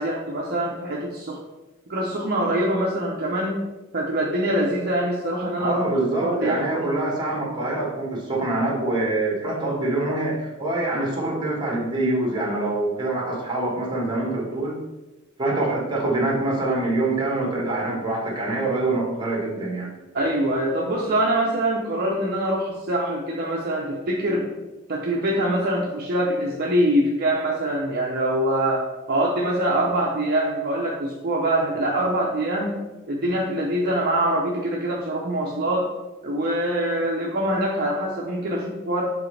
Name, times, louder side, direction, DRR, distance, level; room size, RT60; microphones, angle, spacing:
voice 1, 0.0-1.4 1.9-3.6 3.9-5.8 6.2-7.1 20.1-24.5 24.9-32.8 33.1-35.9 36.2-39.0, right 1 dB, 45° right, -2 dB, 0.7 m, -24 dB
voice 2, 5.6-14.7 15.4-19.9, right 2 dB, 20° right, -2 dB, 1.6 m, -25 dB
7.2 x 4.2 x 3.3 m, 1.1 s
head